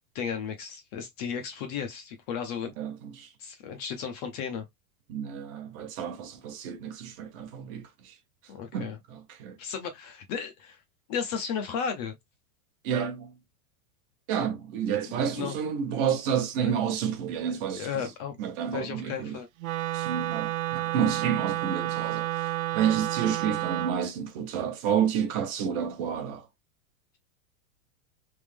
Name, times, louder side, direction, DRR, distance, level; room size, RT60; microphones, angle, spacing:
voice 1, 0.1-2.7 3.4-4.7 8.5-9.0 9.6-10.8 11.1-12.1 15.1-15.6 16.6-16.7 17.8-18.3 18.7-19.5 22.0-22.1, left 7 dB, 30° left, 0.5 m, -34 dB
voice 2, 2.8-3.3 5.1-8.1 8.7-9.6 12.8-13.4 14.3-17.9 18.4-19.4 19.9-26.4, right 8 dB, 40° right, 1.0 m, -30 dB
Wind instrument woodwind instrument, 19.6-24.0, right 16 dB, 75° right, 0.6 m, -30 dB
3.5 x 3.0 x 3.3 m
supercardioid pair, 170°, 42 cm